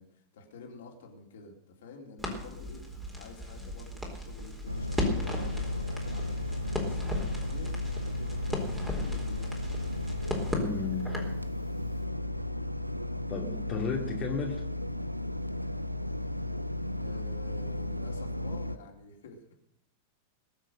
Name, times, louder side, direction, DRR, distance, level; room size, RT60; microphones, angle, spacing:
voice 1, 0.0-2.8 3.2-9.6 16.9-19.5, left 3 dB, 60° left, 1 dB, 3.6 m, -49 dB
Crackle, 2.2-11.4, left 1 dB, 5° right, 4.2 m, -36 dB
sound 1, 4.7-18.8, left 1 dB, 90° right, 0.6 m, -34 dB
voice 2, 10.6-11.0 13.3-14.6, left 5 dB, 25° left, 0 dB, 2.6 m, -34 dB
21.5 x 7.4 x 6.6 m, 0.78 s
figure-of-eight pair, 90°, 0 cm